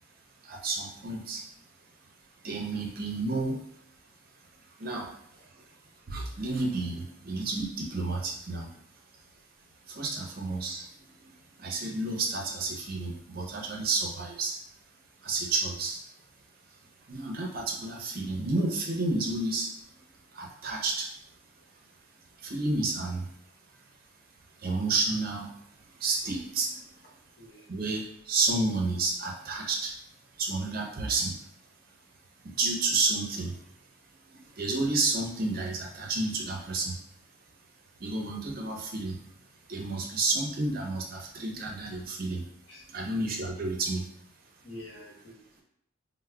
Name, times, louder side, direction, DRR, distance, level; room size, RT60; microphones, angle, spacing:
voice 1, 0.4-1.4 2.4-3.6 4.8-5.2 5.6-5.7 6.1-8.7 9.9-10.9 11.2-11.3 11.6-14.5 15.2-16.0 17.1-19.7 20.3-21.1 22.4-23.3 24.6-25.6 25.9-26.8 27.7-29.9 30.4-31.4 32.4-33.6 34.3-37.0 38.0-39.2 39.7-42.4 42.9-44.0, right 3 dB, 45° right, 0 dB, 0.6 m, -30 dB
voice 2, 27.4-27.7 42.7-42.8 44.6-45.6, left 1 dB, 55° left, -5 dB, 1.0 m, -47 dB
4.5 x 2.0 x 2.3 m, 0.69 s
head